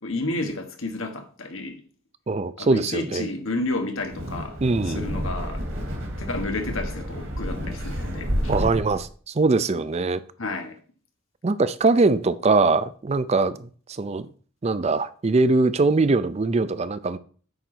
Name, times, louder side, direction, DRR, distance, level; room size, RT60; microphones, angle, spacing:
voice 1, 0.0-1.8 2.6-4.6 4.9-5.6 6.2-8.5 10.4-10.8, left 2 dB, 80° left, 1.6 m, -31 dB
voice 2, 2.3-3.3 4.6-5.1 8.5-10.2 11.4-14.3 14.6-17.2, right 3 dB, 30° right, 0.5 m, -22 dB
Wind, 4.0-9.0, equal, 70° right, 2.2 m, -30 dB
8.8 x 4.0 x 6.1 m
head